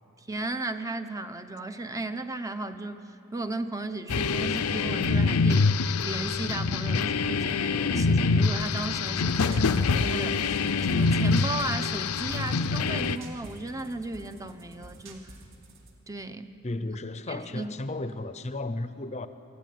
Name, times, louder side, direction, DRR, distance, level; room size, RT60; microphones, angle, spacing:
voice 1, 0.2-5.7 6.0-15.4 16.1-16.5 17.3-17.7, right 2 dB, 15° right, 9 dB, 0.7 m, -35 dB
sound 1, 4.1-13.2, left 4 dB, 85° left, 0.7 m, -25 dB
sound 2, 8.6-16.0, right 1 dB, 60° right, 2.6 m, -49 dB
voice 2, 16.6-19.3, left 2 dB, 30° left, 11 dB, 0.7 m, -34 dB
25.0 x 15.0 x 9.4 m, 2.9 s
head